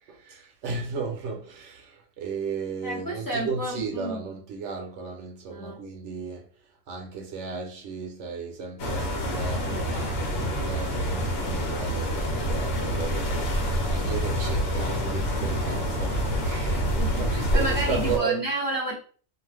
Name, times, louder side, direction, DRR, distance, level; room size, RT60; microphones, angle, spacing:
voice 1, 0.1-6.5 6.9-18.4, right 5 dB, 70° right, 0.9 m, -35 dB
voice 2, 2.8-4.2 5.5-5.8 17.0-18.9, right 1 dB, 20° left, 0.6 m, -30 dB
sound 1, 8.8-18.2, equal, 85° left, 1.1 m, -27 dB
2.4 x 2.4 x 3.4 m
omnidirectional pair, 1.3 m